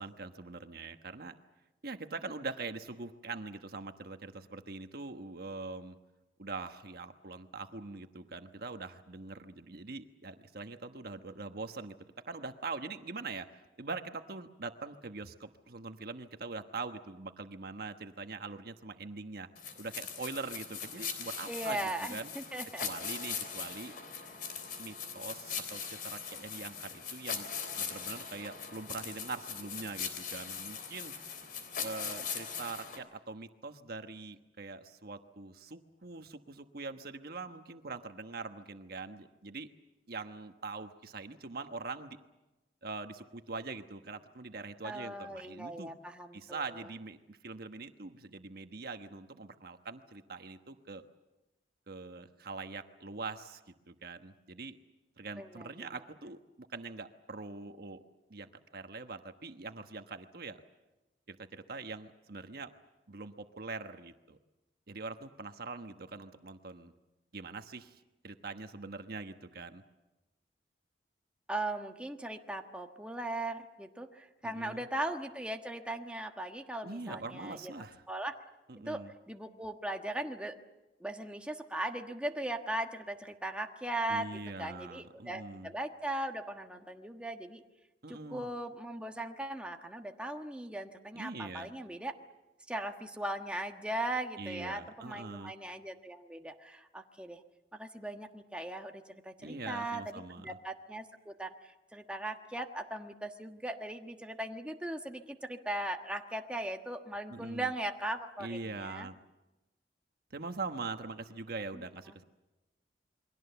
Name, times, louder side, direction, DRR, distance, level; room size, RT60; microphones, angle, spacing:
voice 1, 0.0-1.3 1.8-6.0 6.4-12.0 12.2-13.5 13.8-19.5 19.7-22.3 22.8-23.9 24.8-27.5 27.8-31.1 31.8-39.7 40.1-42.2 42.8-45.9 46.3-51.0 51.9-54.8 55.2-58.0 58.3-60.6 61.3-62.7 63.1-64.4 64.9-66.9 67.3-69.8 74.4-74.9 76.8-78.0 78.7-79.1 84.1-85.7 88.0-88.5 91.1-91.7 94.4-95.5 99.4-100.5 107.3-107.7 108.4-109.1 110.3-112.2, right 3 dB, 60° right, 7 dB, 1.2 m, -43 dB
sound 1, 19.6-33.0, left 6 dB, 55° left, 3.7 m, -40 dB
voice 2, 21.5-22.9 44.8-46.6 55.4-55.9 71.5-78.4 78.8-80.6 81.0-87.6 88.1-92.1 92.7-97.4 97.7-109.1 112.1-112.2, right 1 dB, 5° right, 3 dB, 1.3 m, -39 dB
29.0 x 23.0 x 6.9 m, 1.0 s
head